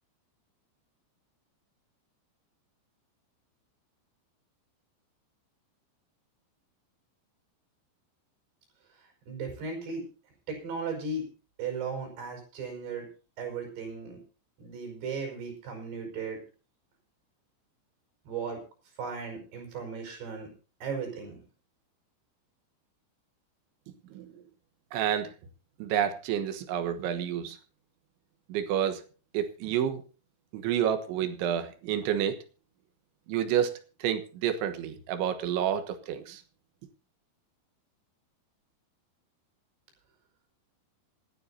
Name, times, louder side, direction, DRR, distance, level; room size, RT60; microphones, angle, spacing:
voice 1, 9.3-10.0 10.5-11.3 11.6-13.1 13.4-14.2 14.6-16.4 18.3-18.6 19.0-20.5 20.8-21.4, right 4 dB, 65° right, 4 dB, 7.1 m, -36 dB
voice 2, 24.9-25.3 25.8-27.6 28.5-29.0 29.3-30.0 30.5-32.4 33.3-36.4, right 9 dB, 90° right, 8 dB, 3.7 m, -29 dB
26.5 x 10.0 x 2.8 m, 0.35 s
omnidirectional pair, 5.2 m